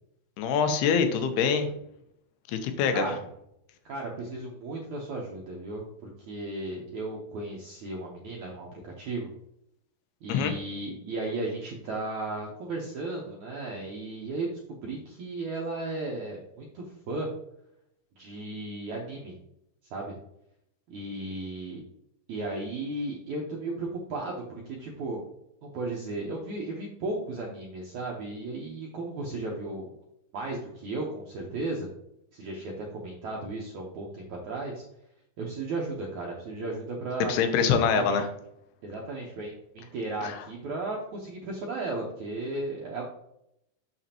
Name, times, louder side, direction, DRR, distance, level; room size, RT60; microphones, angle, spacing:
voice 1, 0.4-1.7 2.5-3.2 10.3-10.6 37.3-38.3 40.2-40.5, left 6 dB, 85° left, 8 dB, 2.7 m, -25 dB
voice 2, 3.9-9.3 10.2-17.3 18.2-19.3 19.9-20.2 20.9-21.9 22.3-25.2 25.6-30.0 30.3-31.9 32.3-34.8 35.4-37.3 37.9-38.2 38.8-43.0, right 2 dB, 70° right, -2 dB, 1.9 m, -35 dB
7.1 x 6.7 x 2.9 m, 0.78 s
omnidirectional pair, 4.5 m